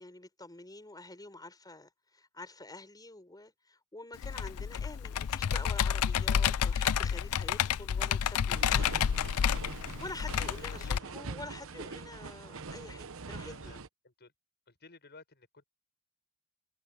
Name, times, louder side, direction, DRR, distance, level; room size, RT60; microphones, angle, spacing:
voice 1, 0.0-8.9 10.0-13.8, left 2 dB, 20° left, 5.1 m, -47 dB
Computer keyboard, 4.2-11.0, left 8 dB, 90° left, 0.4 m, -30 dB
sound 1, 8.5-13.9, right 4 dB, 65° right, 1.0 m, -43 dB
voice 2, 10.8-11.1 13.4-13.8 14.0-14.3 14.7-15.6, left 3 dB, 50° left, 7.0 m, -55 dB
head